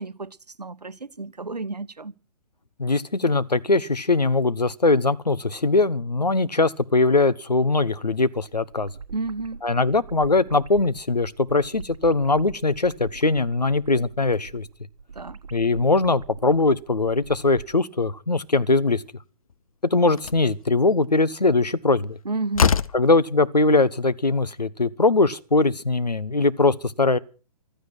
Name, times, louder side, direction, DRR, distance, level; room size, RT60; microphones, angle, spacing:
voice 1, 0.0-2.1 9.1-9.6 15.1-15.4 22.2-22.7, right 3 dB, 85° right, 0.9 m, -31 dB
voice 2, 2.8-8.9 9.6-14.7 15.5-19.0 19.9-22.2 22.9-27.2, left 3 dB, 85° left, 1.0 m, -21 dB
sound 1, 8.7-17.7, right 5 dB, 60° right, 1.4 m, -43 dB
Slam, 19.5-19.6 20.2-20.5 22.0-22.1 22.5-23.1, left 6 dB, 60° left, 0.7 m, -22 dB
15.5 x 13.0 x 6.1 m
figure-of-eight pair, 130°, 20 cm